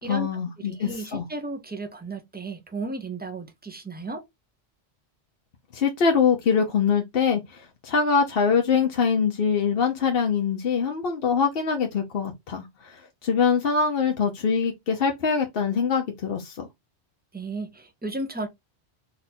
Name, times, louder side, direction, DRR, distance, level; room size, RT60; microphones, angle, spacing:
voice 1, 0.1-1.2 5.7-16.7, left 6 dB, 65° left, 1.0 m, -24 dB
voice 2, 0.6-4.2 17.3-18.5, right 2 dB, 10° right, 0.6 m, -34 dB
4.1 x 2.6 x 4.2 m
omnidirectional pair, 1.1 m